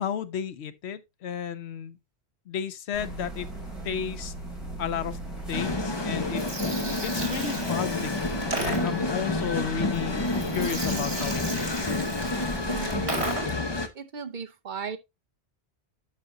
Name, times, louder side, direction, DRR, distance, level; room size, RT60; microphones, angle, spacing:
voice 1, 0.0-2.0 2.5-3.5 3.8-4.3 4.8-5.2 5.5-6.4 6.8-10.2 10.5-11.9, left 8 dB, 80° left, 1.0 m, -33 dB
sound 1, 2.9-13.1, right 1 dB, ahead, 3.4 m, -38 dB
sound 2, 5.5-13.9, left 2 dB, 25° left, 0.8 m, -29 dB
Gurgling, 6.2-13.7, right 2 dB, 80° right, 2.8 m, -36 dB
voice 2, 12.7-13.3 13.9-15.0, right 6 dB, 55° right, 0.7 m, -37 dB
12.0 x 5.1 x 2.6 m
omnidirectional pair, 1.1 m